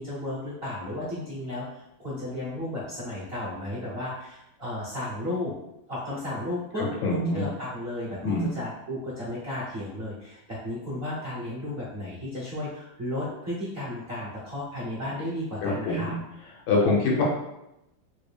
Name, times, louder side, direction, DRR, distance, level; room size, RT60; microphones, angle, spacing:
voice 1, 0.0-5.5 5.9-16.1, left 1 dB, 50° right, -7 dB, 0.8 m, -34 dB
voice 2, 6.8-7.5 8.2-8.5 15.6-16.2 16.7-17.2, left 2 dB, 80° left, -3 dB, 1.8 m, -25 dB
3.6 x 2.3 x 3.4 m, 0.87 s
omnidirectional pair, 2.2 m